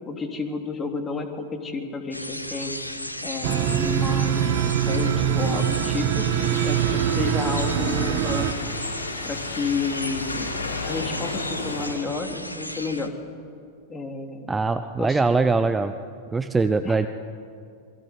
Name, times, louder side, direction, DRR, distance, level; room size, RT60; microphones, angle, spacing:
voice 1, 0.0-2.8 3.2-6.3 6.6-8.8 9.2-10.5 10.9-13.1 13.9-14.5 15.0-15.2 16.8-17.0, left 4 dB, 20° left, 4 dB, 3.3 m, -31 dB
sound 1, 2.1-13.1, left 1 dB, 85° left, 1.4 m, -35 dB
sound 2, 3.4-8.5, right 10 dB, 45° right, 1.6 m, -23 dB
sound 3, 6.3-11.9, left 3 dB, 70° left, 5.9 m, -33 dB
voice 2, 14.5-15.9 16.3-17.1, right 4 dB, 10° right, 10 dB, 0.8 m, -22 dB
27.5 x 21.5 x 8.1 m, 2.4 s
figure-of-eight pair, 90°, 0 cm